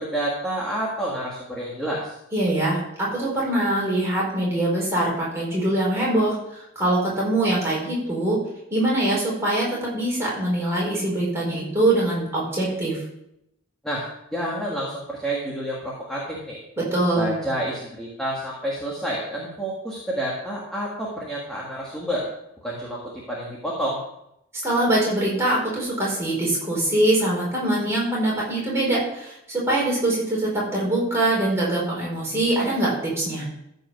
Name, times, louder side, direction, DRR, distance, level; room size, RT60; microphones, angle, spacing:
voice 1, 0.0-2.1 13.8-14.1 14.3-16.6 17.2-22.3 22.6-24.0, right 1 dB, 5° left, -5 dB, 1.8 m, -29 dB
voice 2, 2.3-8.4 8.7-13.0 16.9-17.4 24.6-33.5, right 1 dB, 10° right, -5 dB, 4.5 m, -23 dB
14.0 x 5.5 x 6.2 m, 0.82 s
head